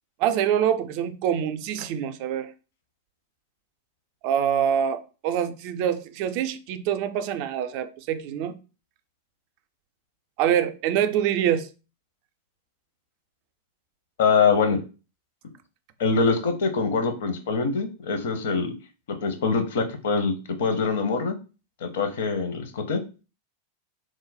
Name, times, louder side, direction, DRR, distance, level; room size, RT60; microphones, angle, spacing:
voice 1, 0.2-2.5 4.2-8.5 10.4-11.7, right 9 dB, 45° right, 0.3 m, -25 dB
voice 2, 14.2-14.8 16.0-18.7 19.2-21.4 21.8-23.0, left 4 dB, 55° left, 0.6 m, -24 dB
3.1 x 2.1 x 4.0 m
figure-of-eight pair, 90°, 0 cm